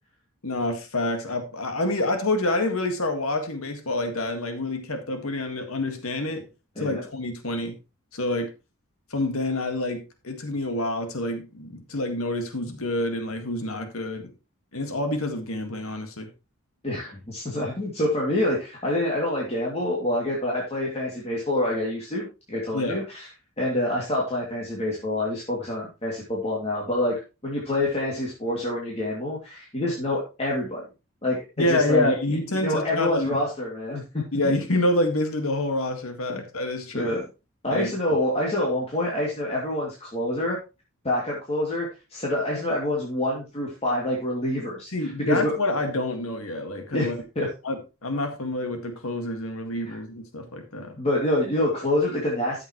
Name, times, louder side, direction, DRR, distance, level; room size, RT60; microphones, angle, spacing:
voice 1, 0.4-6.5 6.8-7.7 8.1-8.5 9.1-14.3 14.7-16.3 22.7-23.0 31.6-33.4 34.3-37.2 37.7-37.9 44.9-47.2 47.6-51.0, left 1 dB, 80° left, 6 dB, 1.9 m, -27 dB
voice 2, 16.8-23.3 23.6-27.1 27.4-30.9 31.2-31.4 31.7-32.4 32.6-34.5 36.3-36.4 36.9-37.2 37.6-40.6 41.0-45.5 46.9-47.1 47.4-47.5 49.8-50.0 51.0-52.6, left 1 dB, 30° left, -4 dB, 2.6 m, -27 dB
13.5 x 7.3 x 3.1 m, 0.28 s
head